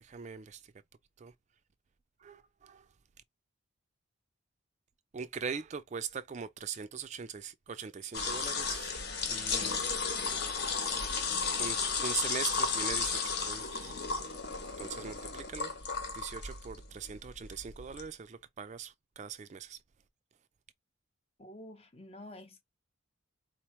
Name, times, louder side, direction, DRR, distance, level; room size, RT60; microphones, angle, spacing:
voice 1, 0.0-0.6 1.2-1.3 2.2-2.8 5.1-9.0 9.3-9.7 11.6-13.9 14.8-19.8, right 6 dB, 35° right, 0.4 m, -41 dB
sound 1, 8.1-18.1, left 5 dB, 50° left, 1.1 m, -34 dB
voice 2, 21.4-22.6, left 1 dB, 30° left, 0.7 m, -49 dB
4.3 x 2.9 x 3.1 m
head